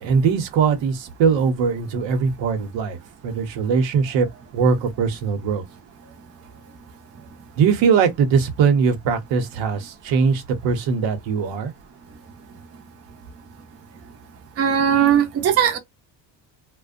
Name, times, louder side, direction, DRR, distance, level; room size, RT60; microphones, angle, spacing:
voice 1, 0.0-3.0 3.2-4.3 4.5-5.6 7.6-11.7, right 6 dB, 85° right, 0.9 m, -20 dB
voice 2, 14.6-15.8, right 9 dB, 35° right, 0.5 m, -18 dB
2.5 x 2.1 x 2.4 m
cardioid pair, 150°, 43 cm